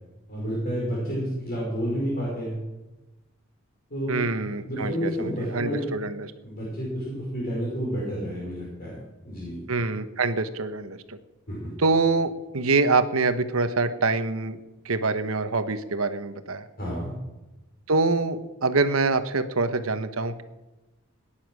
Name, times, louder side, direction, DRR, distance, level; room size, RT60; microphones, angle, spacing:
voice 1, 0.3-2.6 3.9-4.2 4.6-5.9 6.4-9.0 9.2-9.6 11.5-11.7 16.8-17.1, equal, 45° left, -5 dB, 5.1 m, -30 dB
voice 2, 4.1-6.3 9.7-11.2 11.8-14.6 14.8-16.7 17.9-20.4, right 3 dB, 90° right, 10 dB, 1.1 m, -25 dB
18.0 x 10.0 x 6.2 m, 1.1 s
head